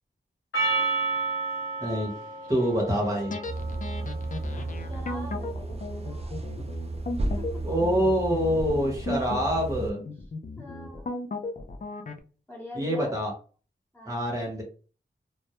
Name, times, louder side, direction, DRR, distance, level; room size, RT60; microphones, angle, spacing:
Percussion, 0.5-5.1, right 3 dB, 75° left, 0.9 m, -32 dB
voice 1, 1.8-2.1 2.5-3.4 7.6-10.0 12.7-13.3 14.1-14.6, equal, 15° right, -2 dB, 0.9 m, -26 dB
sound 1, 3.3-12.2, left 3 dB, 40° left, 0.4 m, -36 dB
sound 2, 3.4-9.9, right 2 dB, 30° right, 0.4 m, -34 dB
voice 2, 4.5-6.4 7.2-7.6 10.6-11.2 12.5-13.1 13.9-14.3, left 1 dB, 10° left, -3 dB, 1.0 m, -44 dB
2.2 x 2.0 x 2.9 m, 0.38 s
wide cardioid pair, 55°, 20 cm